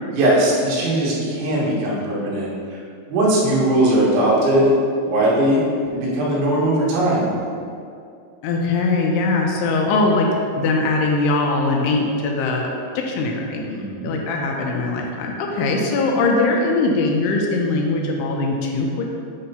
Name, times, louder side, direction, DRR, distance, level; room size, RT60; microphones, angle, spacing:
voice 1, 0.1-2.8 3.1-4.7 5.1-5.6 5.9-7.3 13.6-14.1, right 1 dB, 85° right, -6 dB, 3.9 m, -19 dB
voice 2, 8.4-10.3 10.6-13.6 14.0-19.0, left 3 dB, 80° left, 0 dB, 2.5 m, -21 dB
8.6 x 3.3 x 5.5 m, 2.4 s
omnidirectional pair, 5.2 m